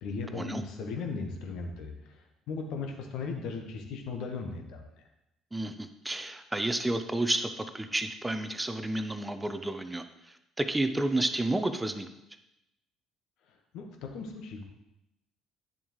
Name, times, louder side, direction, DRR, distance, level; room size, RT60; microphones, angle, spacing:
voice 1, 0.0-5.0 13.5-14.6, left 4 dB, 60° left, 3 dB, 1.3 m, -37 dB
voice 2, 5.5-12.1, right 2 dB, 15° right, 9 dB, 0.7 m, -31 dB
10.0 x 7.1 x 3.1 m, 0.87 s
figure-of-eight pair, 50°, 0 cm